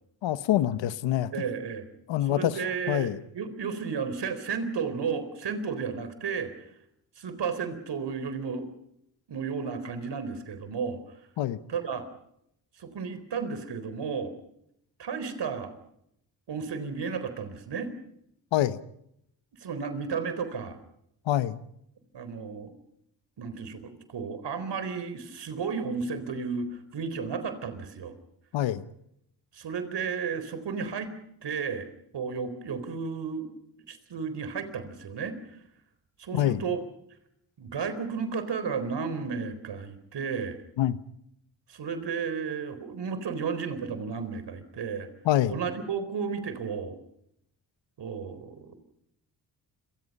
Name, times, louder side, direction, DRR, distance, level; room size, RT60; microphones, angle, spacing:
voice 1, 0.2-1.3 2.1-2.6 2.9-3.2 11.4-11.6 18.5-18.8 21.3-21.6 28.5-28.8 36.3-36.6 40.8-41.0 45.2-45.5, left 13 dB, 80° left, 1.2 m, -25 dB
voice 2, 1.3-1.8 2.3-6.7 7.2-8.7 9.3-11.0 11.7-12.1 12.8-14.3 15.0-15.7 16.5-17.9 19.6-20.8 22.1-22.7 23.4-28.2 29.5-31.1 31.4-31.9 32.1-33.5 33.9-35.4 36.2-36.8 37.6-40.6 41.7-45.1 45.5-47.0 48.0-48.8, right 5 dB, 65° right, 4.1 m, -33 dB
29.5 x 23.5 x 5.4 m
supercardioid pair, 50°, 44 cm